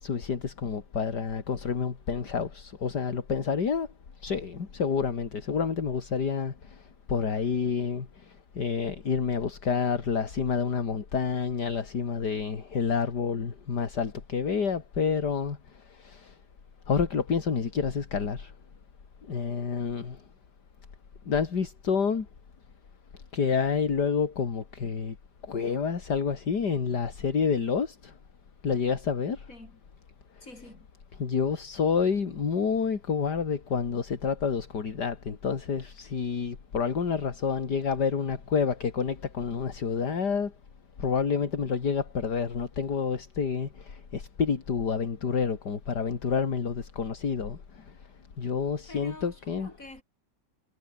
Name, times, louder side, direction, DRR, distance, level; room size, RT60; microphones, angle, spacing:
voice 1, 0.0-3.9 4.2-16.4 16.9-18.5 19.2-20.2 21.3-22.3 23.3-25.2 25.4-28.2 28.6-29.5 30.4-30.5 31.2-40.5 41.0-48.0 48.4-49.7, left 6 dB, 65° left, 2.8 m, -29 dB
voice 2, 30.4-30.9 48.9-50.0, left 2 dB, 45° left, 6.9 m, -47 dB
omnidirectional pair, 2.0 m